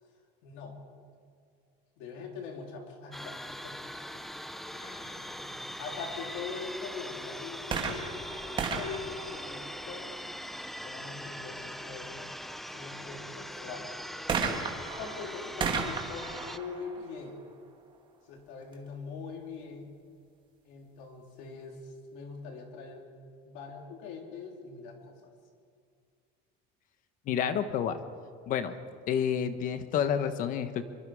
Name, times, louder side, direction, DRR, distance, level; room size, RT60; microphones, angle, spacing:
voice 1, 0.4-0.8 2.0-3.8 4.1-4.2 4.7-10.3 10.8-12.2 12.7-14.0 15.0-17.4 18.3-19.9 20.6-23.1 23.5-25.3, left 5 dB, 65° left, 2 dB, 3.6 m, -43 dB
sound 1, 3.1-16.6, equal, ahead, 0.5 m, -41 dB
sound 2, 7.6-10.2 14.3-17.9 18.7-18.8, right 5 dB, 25° right, 1.9 m, -35 dB
voice 2, 27.3-28.0 28.5-28.7 29.1-30.8, left 8 dB, 40° left, 10 dB, 1.3 m, -29 dB
25.0 x 23.5 x 4.9 m, 2.2 s
cardioid pair, 175°, 21 cm